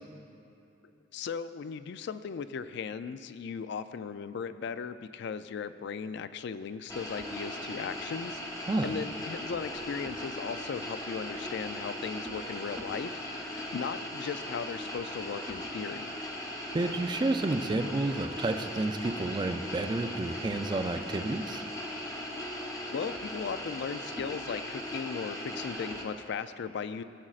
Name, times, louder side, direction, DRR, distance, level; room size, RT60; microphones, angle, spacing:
voice 1, 1.1-16.1 22.4-22.5 22.9-27.0, left 6 dB, 60° left, 13 dB, 0.3 m, -37 dB
sound 1, 6.9-26.0, left 1 dB, 20° left, 0.9 m, -38 dB
voice 2, 16.7-21.6, right 2 dB, 20° right, 7 dB, 0.3 m, -30 dB
16.5 x 7.4 x 2.4 m, 2.7 s
head